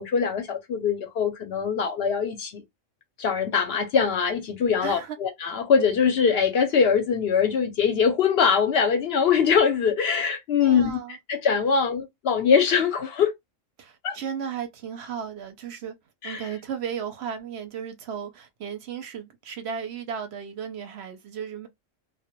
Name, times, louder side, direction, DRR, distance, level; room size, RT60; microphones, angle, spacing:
voice 1, 0.0-2.6 3.2-11.0 11.3-13.3 14.0-14.2 16.2-16.5, left 6 dB, 65° left, 0.7 m, -22 dB
voice 2, 4.8-5.2 10.6-11.2 13.8-16.0 16.2-21.7, right 7 dB, 65° right, 0.7 m, -35 dB
2.1 x 2.1 x 2.8 m
omnidirectional pair, 1.3 m